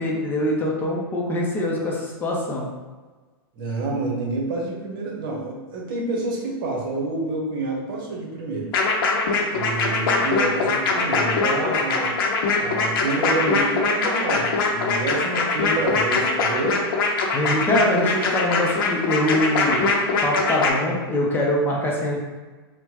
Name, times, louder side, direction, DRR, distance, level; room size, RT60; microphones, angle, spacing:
voice 1, 0.0-2.7 17.3-19.8 20.2-22.2, left 1 dB, 15° left, -3 dB, 0.6 m, -23 dB
voice 2, 3.5-8.7 9.5-12.1 12.6-16.8, right 2 dB, 55° right, -1 dB, 1.0 m, -28 dB
sound 1, 8.7-20.7, left 4 dB, 60° left, 0.7 m, -22 dB
4.3 x 2.2 x 2.9 m, 1.3 s
hypercardioid pair, 125°, 13 cm